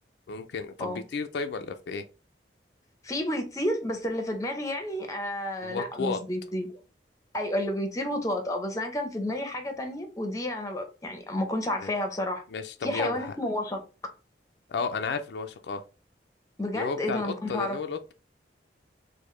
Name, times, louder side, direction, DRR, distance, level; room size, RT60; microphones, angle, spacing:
voice 1, 0.3-2.0 5.6-6.2 11.8-11.9 12.5-13.3 14.7-15.8 16.7-18.1, left 5 dB, 70° left, 0.3 m, -33 dB
voice 2, 3.0-6.7 7.3-12.4 12.8-13.8 16.6-17.8, left 1 dB, 20° left, 0.6 m, -31 dB
4.7 x 2.1 x 3.1 m
head